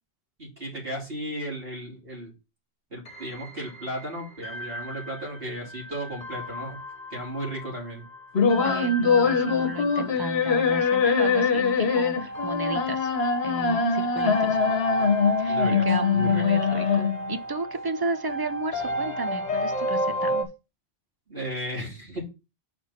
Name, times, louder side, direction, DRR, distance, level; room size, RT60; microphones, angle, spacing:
voice 1, 0.4-2.3 2.9-6.8 7.1-8.0 15.5-15.9 16.1-16.4 21.3-22.2, right 1 dB, 60° right, 3.0 m, -35 dB
sound 1, 3.1-20.4, equal, 40° left, 1.3 m, -33 dB
sound 2, 8.3-17.3, left 5 dB, 70° left, 1.2 m, -23 dB
voice 2, 8.5-13.1 13.4-14.6 15.4-20.5, right 2 dB, 25° right, 0.6 m, -34 dB
6.0 x 4.5 x 5.7 m
omnidirectional pair, 1.1 m